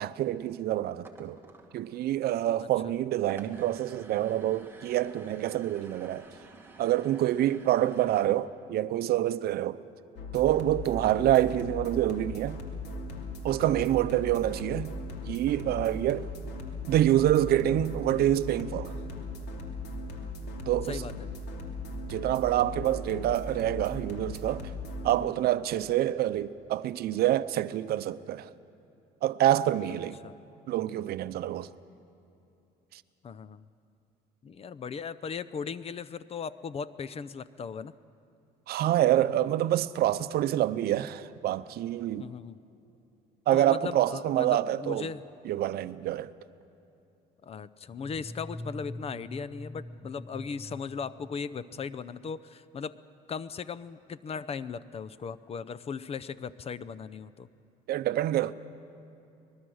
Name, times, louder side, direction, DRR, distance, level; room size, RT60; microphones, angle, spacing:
voice 1, 0.0-1.4 1.7-6.3 6.8-9.8 10.3-12.6 13.4-14.9 15.3-16.3 16.9-18.9 20.7-21.0 22.1-24.7 25.0-28.5 29.2-30.2 30.7-31.7 32.9-33.0 38.7-42.3 43.5-45.1 45.5-46.3 57.9-58.5, right 13 dB, 70° right, 0.7 m, -27 dB
sound 1, 0.9-8.2, right 3 dB, 15° right, 2.2 m, -52 dB
voice 2, 2.6-3.0 11.0-11.3 20.8-21.1 25.1-25.3 29.9-30.4 33.2-33.7 34.4-37.9 42.2-42.6 43.5-45.2 47.4-53.0 53.3-57.5, left 6 dB, 35° left, 0.6 m, -38 dB
sound 2, 10.2-25.1, left 2 dB, 80° left, 2.8 m, -38 dB
sound 3, 47.9-52.0, left 1 dB, 5° left, 0.9 m, -44 dB
24.0 x 21.0 x 6.4 m
cardioid pair, 110°, 17 cm